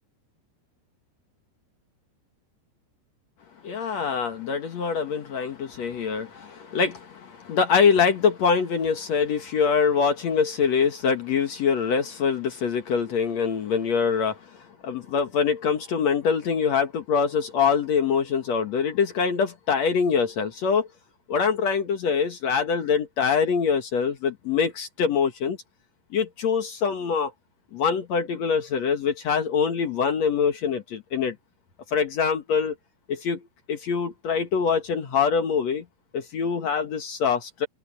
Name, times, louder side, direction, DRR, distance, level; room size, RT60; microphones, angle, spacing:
voice 1, 3.6-14.4 14.8-20.9 21.3-25.6 26.1-27.3 27.7-31.4 31.9-32.8 33.1-33.4 33.7-35.8 36.1-37.7, left 6 dB, 60° left, 1.9 m, -24 dB
open air
omnidirectional pair, 4.9 m